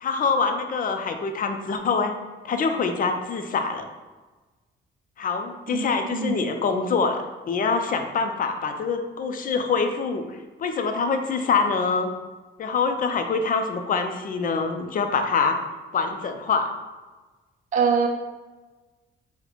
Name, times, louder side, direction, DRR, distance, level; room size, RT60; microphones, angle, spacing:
voice 1, 0.0-2.1 2.4-3.9 5.2-12.1 12.6-15.6 15.9-16.7, left 4 dB, 45° left, 6 dB, 0.5 m, -25 dB
voice 2, 5.7-6.4 17.7-18.1, right 6 dB, 40° right, 2 dB, 0.4 m, -23 dB
3.9 x 2.2 x 4.3 m, 1.3 s
cardioid pair, 90°, 20 cm